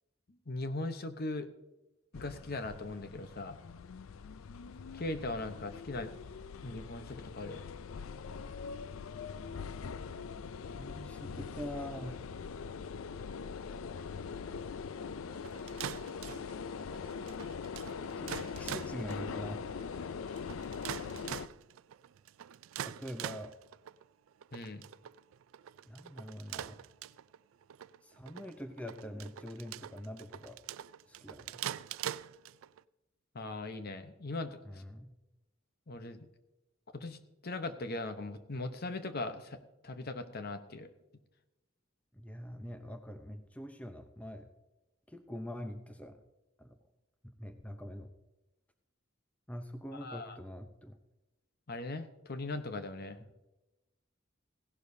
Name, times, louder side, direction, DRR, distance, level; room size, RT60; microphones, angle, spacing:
voice 1, 0.5-1.5 2.1-3.6 4.9-6.1 6.6-7.6 24.5-24.8 33.3-34.8 35.9-36.3 36.9-39.6 39.8-40.9 50.0-50.4 51.7-53.2, left 2 dB, 50° left, 9 dB, 0.9 m, -39 dB
sound 1, 2.1-21.5, left 5 dB, 80° left, 0.4 m, -42 dB
voice 2, 10.8-12.3 18.2-19.7 22.8-23.6 25.9-26.8 28.0-30.6 31.1-31.6 34.6-35.2 42.1-44.5 45.1-46.2 46.6-46.8 47.2-48.1 49.5-51.0, equal, 5° left, 7 dB, 0.7 m, -44 dB
sound 2, 15.3-32.8, right 10 dB, 80° right, 0.4 m, -44 dB
16.0 x 11.5 x 2.7 m, 0.99 s
head